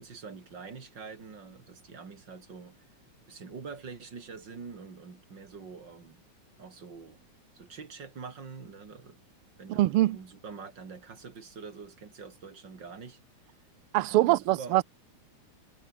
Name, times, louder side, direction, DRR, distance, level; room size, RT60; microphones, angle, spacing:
voice 1, 0.0-2.9 3.3-6.2 6.6-7.2 7.5-9.2 9.6-13.5 14.1-14.7, right 5 dB, 35° right, 3.4 m, -45 dB
voice 2, 9.7-10.2 13.9-14.8, right 16 dB, 90° right, 1.2 m, -23 dB
omnidirectional pair, 3.4 m